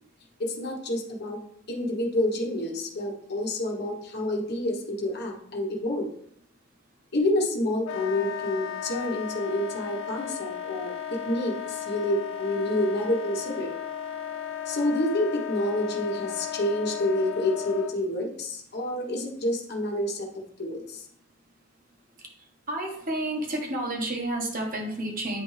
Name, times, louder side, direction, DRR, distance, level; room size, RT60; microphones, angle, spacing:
voice 1, 0.4-1.4 1.7-6.1 7.1-10.9 11.3-13.7 14.7-20.3 20.6-21.1, left 1 dB, 55° left, 0 dB, 1.1 m, -28 dB
Wind instrument woodwind instrument, 7.8-18.0, left 9 dB, 85° left, 0.6 m, -35 dB
voice 2, 22.7-25.4, right 1 dB, 45° right, 1 dB, 1.3 m, -30 dB
9.1 x 3.4 x 3.2 m, 0.67 s
head